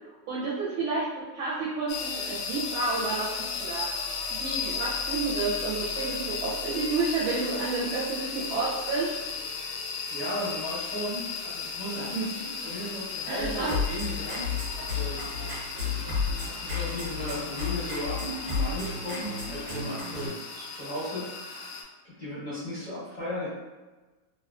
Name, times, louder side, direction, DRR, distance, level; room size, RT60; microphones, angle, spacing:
voice 1, 0.3-3.9 4.3-9.1 13.3-13.7, right 3 dB, 75° right, -7 dB, 1.3 m, -30 dB
sound 1, 1.9-21.8, left 5 dB, 80° left, 1.0 m, -35 dB
voice 2, 10.1-14.5 14.8-15.3 16.4-20.3 20.5-21.7 22.0-23.5, equal, 45° left, -12 dB, 0.5 m, -36 dB
sound 2, 13.4-20.3, left 4 dB, 50° right, 1.3 m, -33 dB
3.4 x 2.3 x 2.4 m, 1.2 s
omnidirectional pair, 2.4 m